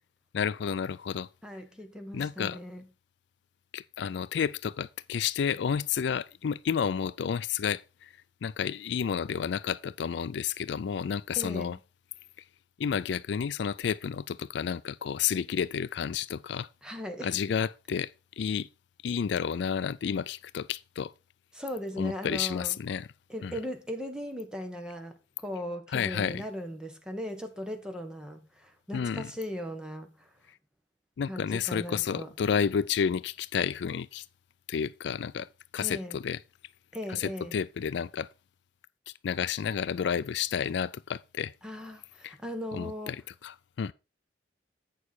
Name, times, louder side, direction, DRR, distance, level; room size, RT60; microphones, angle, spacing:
voice 1, 0.3-1.3 2.1-2.6 3.7-8.1 8.4-11.8 12.8-16.7 17.2-18.7 19.0-21.1 22.0-23.1 23.4-23.5 25.9-26.4 28.9-29.3 31.2-34.3 34.7-35.5 35.7-36.4 37.1-38.3 39.1-41.5 42.2-42.4 42.7-43.2 43.4-43.9, left 7 dB, 70° left, 0.4 m, -31 dB
voice 2, 1.4-2.9 11.3-11.8 16.8-17.4 21.5-22.8 23.3-30.3 31.3-32.3 35.7-36.2 36.9-37.6 41.6-43.1, equal, 5° right, 1.5 m, -38 dB
sound 1, 34.2-35.0, left 1 dB, 20° right, 4.5 m, -66 dB
8.4 x 6.6 x 4.7 m
head